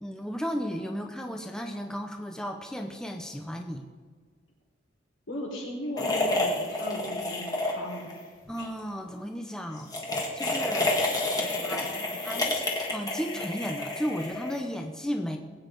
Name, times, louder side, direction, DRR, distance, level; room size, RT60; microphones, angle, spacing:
voice 1, 0.0-3.8 8.5-9.9 10.3-10.9 11.6-12.5 12.9-15.4, equal, 5° left, 3 dB, 0.8 m, -34 dB
voice 2, 5.3-8.1 11.3-12.4, left 1 dB, 90° left, -3 dB, 4.5 m, -38 dB
sound 1, 6.0-8.2 8.5-8.7 9.8-14.8, left 2 dB, 20° left, 1.8 m, -29 dB
20.5 x 8.8 x 3.9 m, 1.5 s
head